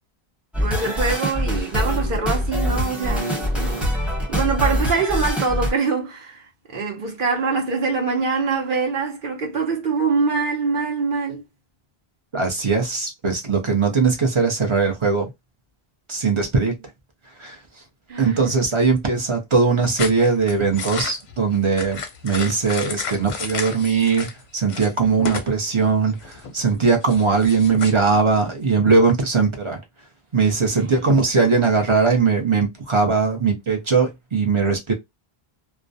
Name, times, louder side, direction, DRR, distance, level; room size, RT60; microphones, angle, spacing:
sound 1, 0.5-5.7, equal, ahead, 0.7 m, -24 dB
voice 1, 0.6-3.9 4.3-11.4 18.1-18.5 30.8-30.9, right 4 dB, 55° right, 0.9 m, -24 dB
voice 2, 12.3-15.3 16.1-16.8 17.4-17.6 18.2-29.8 30.3-34.9, right 4 dB, 35° right, 0.6 m, -20 dB
sound 2, 20.0-24.4 24.7-25.5 25.8-27.9, left 5 dB, 55° left, 0.6 m, -32 dB
2.3 x 2.1 x 2.6 m
omnidirectional pair, 1.0 m